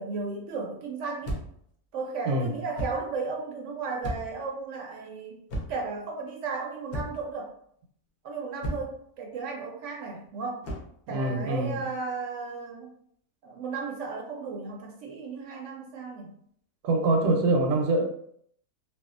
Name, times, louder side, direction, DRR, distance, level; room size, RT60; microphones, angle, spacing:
voice 1, 0.0-1.4 1.9-5.4 5.7-7.5 8.2-10.7 11.1-12.9 13.4-16.3, right 4 dB, 70° right, 0 dB, 0.7 m, -35 dB
sound 1, 1.2-1.7 2.8-3.1 4.0-4.4 5.5-5.9 6.9-7.3 8.6-9.0 10.6-11.0, equal, 55° left, 0.7 m, -34 dB
voice 2, 11.1-11.8 16.8-18.1, right 2 dB, 85° right, 3 dB, 1.1 m, -24 dB
2.6 x 2.3 x 2.4 m, 0.67 s
omnidirectional pair, 1.6 m